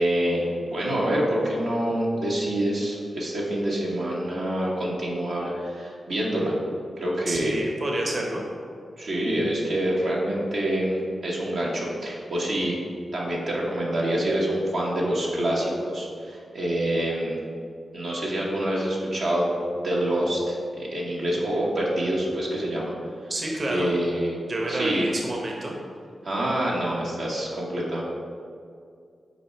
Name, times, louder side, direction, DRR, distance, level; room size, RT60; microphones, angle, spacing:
voice 1, 0.0-6.6 7.0-7.6 9.0-12.8 13.1-17.4 17.9-22.9 23.7-24.4 24.7-25.1 26.2-28.0, right 1 dB, 80° right, -5 dB, 1.1 m, -26 dB
voice 2, 7.3-8.4 23.3-23.9 24.5-25.8, right 1 dB, 50° right, -1 dB, 1.1 m, -28 dB
5.3 x 4.4 x 4.5 m, 2.3 s
cardioid pair, 45°, 0 cm